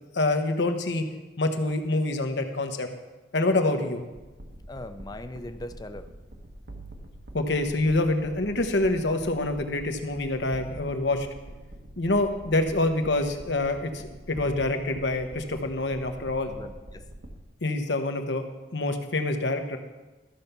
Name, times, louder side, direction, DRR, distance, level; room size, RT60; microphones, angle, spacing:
voice 1, 0.1-1.0 1.4-2.9 3.3-4.0 7.3-11.3 12.0-16.5 17.6-18.4 18.7-19.8, left 2 dB, 80° left, 6 dB, 1.1 m, -26 dB
sound 1, 4.1-17.4, right 1 dB, 65° right, 1.3 m, -45 dB
voice 2, 4.7-6.1 16.5-17.1, left 1 dB, 20° left, 9 dB, 0.5 m, -40 dB
13.0 x 5.8 x 6.7 m, 1.1 s
head